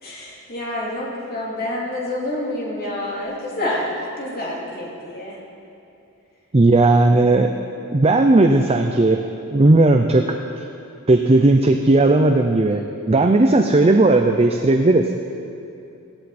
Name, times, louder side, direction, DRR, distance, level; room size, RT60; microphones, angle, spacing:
voice 1, 0.0-3.9 4.2-5.3, left 1 dB, 45° left, -5 dB, 3.3 m, -28 dB
voice 2, 6.5-7.5 7.9-9.2 9.5-10.4 11.1-15.1, right 2 dB, 25° right, 5 dB, 0.6 m, -15 dB
17.5 x 15.0 x 4.3 m, 2.7 s
head